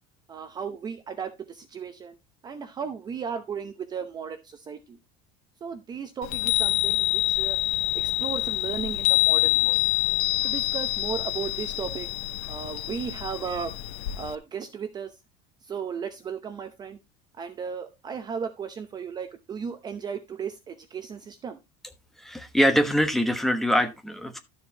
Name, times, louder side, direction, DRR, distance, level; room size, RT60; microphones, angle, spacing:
voice 1, 0.3-2.2 2.4-5.0 5.6-7.6 7.9-9.8 10.4-12.1 12.5-13.7 14.1-15.2 15.6-17.0 17.4-21.6, right 6 dB, 20° right, 0.7 m, -35 dB
Chime, 6.2-14.4, left 17 dB, 85° left, 0.8 m, -26 dB
voice 2, 22.2-24.4, equal, ahead, 1.1 m, -23 dB
12.5 x 7.1 x 2.9 m
cardioid pair, 160°, 18 cm